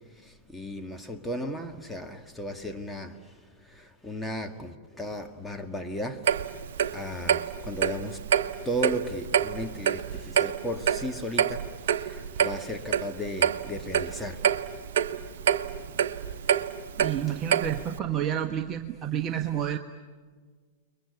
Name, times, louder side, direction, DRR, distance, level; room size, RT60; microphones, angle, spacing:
voice 1, 0.5-3.1 3.7-6.2 6.9-8.2 8.7-11.7 12.0-14.4, equal, 5° left, 4 dB, 1.9 m, -35 dB
Clock, 6.3-18.0, right 8 dB, 65° right, 1.0 m, -27 dB
voice 2, 17.0-19.8, right 10 dB, 30° right, 5 dB, 1.2 m, -29 dB
29.0 x 22.5 x 8.6 m, 1.5 s
hypercardioid pair, 105°, 0 cm